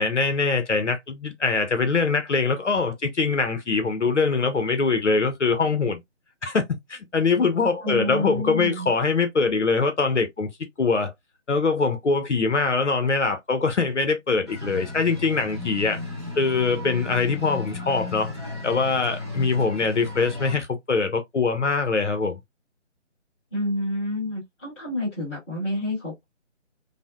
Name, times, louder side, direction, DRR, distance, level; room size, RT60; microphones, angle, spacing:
voice 1, 0.0-6.0 6.4-6.6 6.9-10.5 10.8-11.1 11.5-16.0 16.4-18.3 18.6-22.4, left 4 dB, 70° left, 0.7 m, -23 dB
voice 2, 7.8-8.9 23.5-26.2, left 1 dB, 10° left, 1.2 m, -29 dB
sound 1, 14.5-20.5, left 3 dB, 25° right, 0.7 m, -35 dB
3.3 x 2.1 x 2.3 m
figure-of-eight pair, 150°, 37 cm